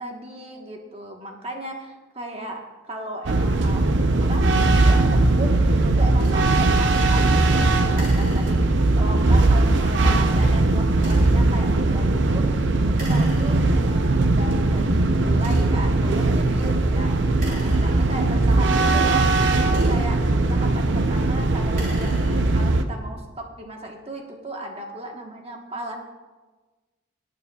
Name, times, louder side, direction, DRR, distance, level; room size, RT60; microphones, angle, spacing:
voice 1, 0.0-4.5 4.8-22.1 22.5-26.0, right 1 dB, 30° right, 2 dB, 1.2 m, -36 dB
sound 1, 3.3-22.8, right 2 dB, 70° right, 0.6 m, -19 dB
sound 2, 6.2-6.4 7.9-9.0 10.9-11.5 12.9-13.9 14.6-14.7 15.3-16.0 17.3-18.5 19.4-20.3 21.6-22.7, right 1 dB, 45° right, 3.5 m, -41 dB
18.5 x 9.3 x 2.3 m, 1.3 s
head